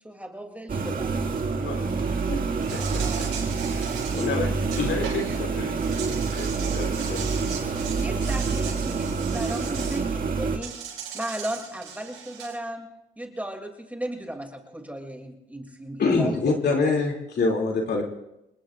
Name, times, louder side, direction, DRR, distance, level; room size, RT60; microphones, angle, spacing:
voice 1, 0.0-1.1 7.8-10.7 11.1-12.9 13.2-16.8, right 1 dB, 5° right, 3 dB, 2.7 m, -35 dB
sound 1, 0.7-10.6, right 4 dB, 45° right, 2.0 m, -27 dB
voice 2, 1.6-3.3 3.7-7.5, left 3 dB, 70° left, 3 dB, 4.8 m, -35 dB
Insect, 2.6-5.4 5.7-10.0 10.6-12.6, right 7 dB, 85° right, 4.7 m, -38 dB
voice 3, 4.1-4.4 4.8-4.9 16.0-18.0, left 3 dB, 55° left, 0 dB, 2.8 m, -24 dB
28.0 x 19.5 x 2.5 m, 0.88 s
cardioid pair, 90°, 20 cm